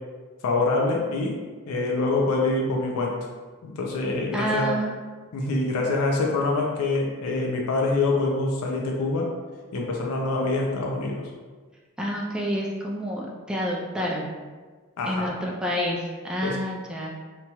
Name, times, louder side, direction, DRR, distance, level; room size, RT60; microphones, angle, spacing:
voice 1, 0.4-1.4 1.7-3.1 3.6-4.7 5.3-9.3 9.7-11.3 15.0-15.3 16.4-16.6, left 3 dB, 90° left, 0 dB, 0.4 m, -25 dB
voice 2, 4.3-5.0 12.0-14.3 15.0-17.1, equal, 5° right, -3 dB, 0.3 m, -28 dB
2.9 x 2.3 x 2.8 m, 1.4 s
head